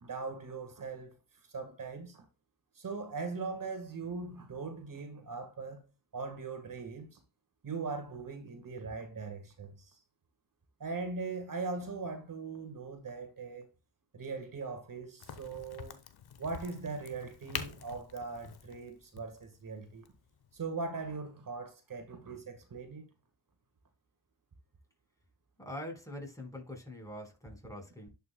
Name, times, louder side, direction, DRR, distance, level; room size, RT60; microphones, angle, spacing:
voice 1, 0.0-1.1 1.5-2.3 2.8-5.9 6.1-7.2 7.6-10.0 10.8-13.7 14.1-16.0 16.4-20.1 20.5-23.1, right 4 dB, 50° right, 1.7 m, -40 dB
Crack, 15.2-20.7, left 8 dB, 60° left, 1.0 m, -46 dB
voice 2, 25.6-28.1, left 1 dB, 10° left, 4.5 m, -44 dB
11.0 x 5.6 x 2.3 m
supercardioid pair, 45°, 42 cm